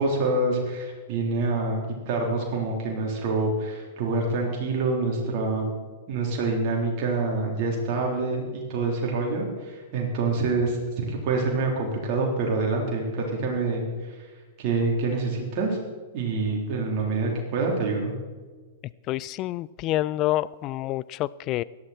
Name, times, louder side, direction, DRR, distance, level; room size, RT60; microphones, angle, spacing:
voice 1, 0.0-1.8 2.1-5.7 6.1-13.9 14.6-15.8 16.1-18.1, right 3 dB, 45° right, -1 dB, 4.0 m, -26 dB
voice 2, 19.1-21.6, left 15 dB, 35° left, 20 dB, 0.4 m, -27 dB
17.5 x 12.5 x 4.5 m, 1.4 s
figure-of-eight pair, 105°, 0 cm